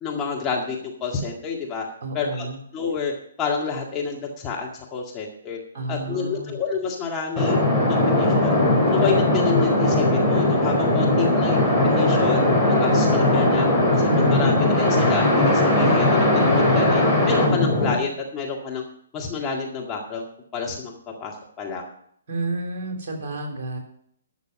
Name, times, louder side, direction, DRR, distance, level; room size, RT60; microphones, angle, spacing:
voice 1, 0.0-1.8 2.1-2.5 2.7-3.1 3.4-5.6 5.9-7.6 7.9-8.6 8.9-11.6 12.0-12.4 12.8-13.7 13.9-18.8 19.1-20.2 20.5-20.9 21.2-21.8, left 5 dB, 15° left, -1 dB, 1.9 m, -29 dB
voice 2, 2.0-2.6 5.7-6.5 10.9-11.4 14.1-14.7 22.3-23.8, right 2 dB, 40° right, 2 dB, 3.5 m, -30 dB
sound 1, 7.4-17.9, left 1 dB, ahead, 3.9 m, -19 dB
12.5 x 6.6 x 6.4 m, 0.65 s
figure-of-eight pair, 130°, 0 cm